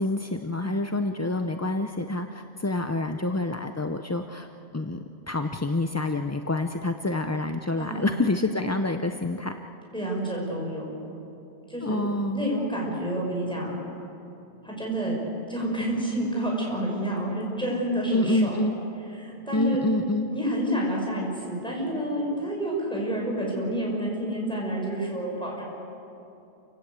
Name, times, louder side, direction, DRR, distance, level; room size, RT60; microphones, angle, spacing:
voice 1, 0.0-9.5 11.8-12.5 18.1-18.8 19.5-20.3, left 2 dB, 20° left, 6 dB, 0.5 m, -27 dB
voice 2, 7.8-8.2 9.9-10.9 11.7-12.0 12.3-13.7 14.6-15.2 15.5-18.6 19.1-19.8 20.3-25.6, right 1 dB, 5° left, -3 dB, 6.3 m, -29 dB
28.0 x 17.0 x 8.3 m, 2.9 s
omnidirectional pair, 1.1 m